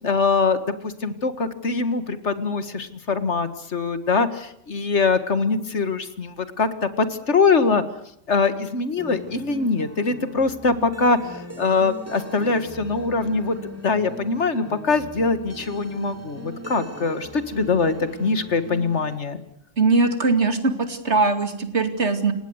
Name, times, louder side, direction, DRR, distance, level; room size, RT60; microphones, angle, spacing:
voice 1, 0.0-7.8 8.3-13.6 13.8-17.9 18.2-19.4, left 4 dB, 70° left, 11 dB, 2.0 m, -23 dB
sound 1, 9.0-19.2, right 1 dB, 10° right, 2.5 m, -39 dB
voice 2, 19.8-22.3, right 3 dB, 65° right, 8 dB, 2.7 m, -21 dB
29.0 x 17.5 x 8.0 m, 0.72 s
omnidirectional pair, 1.3 m